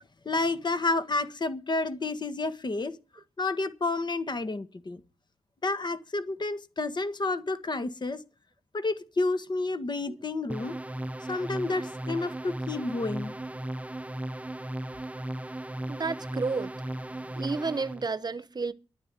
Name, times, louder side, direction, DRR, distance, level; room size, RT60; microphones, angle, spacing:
voice 1, 0.2-3.0 3.4-5.0 5.6-8.2 8.7-10.8 11.3-13.3, left 3 dB, 50° left, 1.6 m, -30 dB
sound 1, 10.5-18.1, right 1 dB, 15° right, 0.6 m, -36 dB
voice 2, 15.9-16.7 17.4-18.7, right 4 dB, 45° right, 0.9 m, -31 dB
11.5 x 9.8 x 7.6 m
cardioid pair, 50°, 10 cm